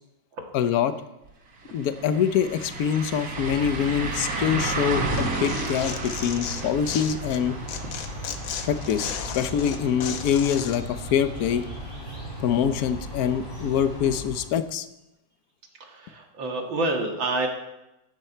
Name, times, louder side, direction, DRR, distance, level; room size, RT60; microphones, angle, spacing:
voice 1, 0.5-0.9 1.7-7.5 8.6-11.6 12.4-14.9, left 8 dB, 60° left, 11 dB, 1.2 m, -25 dB
sound 1, 1.2-1.3 1.7-11.4 11.8-11.9 14.7-14.8, right 3 dB, 50° right, 2.1 m, -33 dB
sound 2, 3.2-14.6, equal, 30° left, 6.0 m, -37 dB
Tearing, 5.1-7.4 7.7-10.8, left 8 dB, 85° left, 1.8 m, -35 dB
voice 2, 15.8-17.5, right 2 dB, 80° right, 2 dB, 2.8 m, -28 dB
16.0 x 12.5 x 4.5 m, 0.93 s
omnidirectional pair, 2.1 m